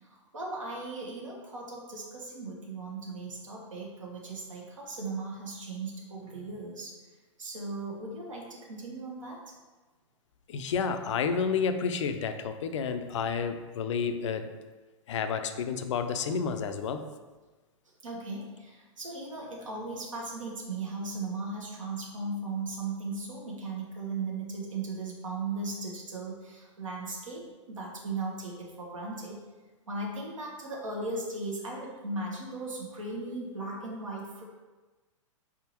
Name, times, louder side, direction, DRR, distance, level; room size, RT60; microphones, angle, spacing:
voice 1, 0.0-6.9 7.4-9.4 18.0-29.4 29.9-34.4, right 3 dB, 85° right, -3 dB, 1.0 m, -37 dB
voice 2, 10.5-14.5 15.1-17.1, left 6 dB, 70° left, 8 dB, 0.4 m, -30 dB
4.1 x 3.5 x 2.9 m, 1.2 s
hypercardioid pair, 110°, 16 cm